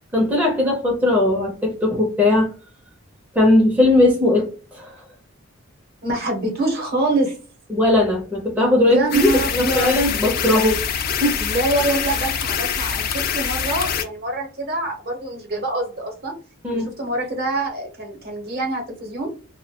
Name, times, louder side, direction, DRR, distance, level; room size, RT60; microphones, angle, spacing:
voice 1, 0.1-2.5 3.3-5.0 7.7-10.8 11.2-11.4 16.6-16.9, left 1 dB, 10° right, 0.5 m, -18 dB
voice 2, 6.0-7.3 8.8-10.1 11.4-16.3 16.7-19.3, right 2 dB, 50° right, 0.8 m, -25 dB
sound 1, 9.1-14.0, left 7 dB, 45° left, 0.3 m, -24 dB
2.2 x 2.1 x 2.7 m
head